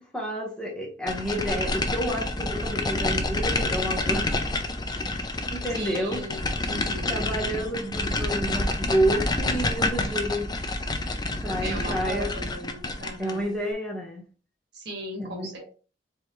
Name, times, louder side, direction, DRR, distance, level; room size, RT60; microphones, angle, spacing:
voice 1, 0.1-4.3 5.0-5.2 5.5-6.2 7.1-10.5 11.4-12.3 13.2-14.2 15.2-15.5, right 1 dB, 5° left, -2 dB, 1.1 m, -29 dB
sound 1, 1.1-13.4, left 2 dB, 25° left, 0.5 m, -28 dB
voice 2, 5.7-7.8 11.6-13.5 14.7-15.7, right 1 dB, 65° right, 1 dB, 1.7 m, -37 dB
4.6 x 3.3 x 3.0 m, 0.35 s
head